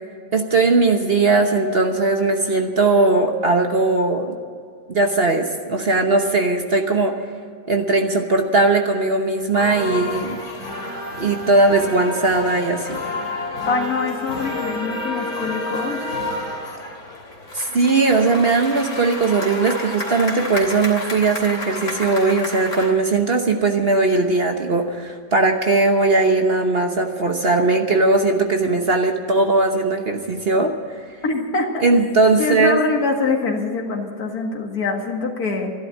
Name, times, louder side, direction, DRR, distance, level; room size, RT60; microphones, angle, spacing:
voice 1, 0.3-4.4 4.9-7.1 7.7-10.4 11.2-13.0 17.5-31.0 31.8-32.8, right 3 dB, 40° right, 4 dB, 1.1 m, -19 dB
sound 1, 9.5-22.9, left 2 dB, 50° left, 3.5 m, -30 dB
voice 2, 13.7-16.1 31.2-31.8 32.4-35.7, left 3 dB, 65° left, 2 dB, 2.4 m, -24 dB
13.5 x 11.5 x 8.8 m, 2.2 s
omnidirectional pair, 1.8 m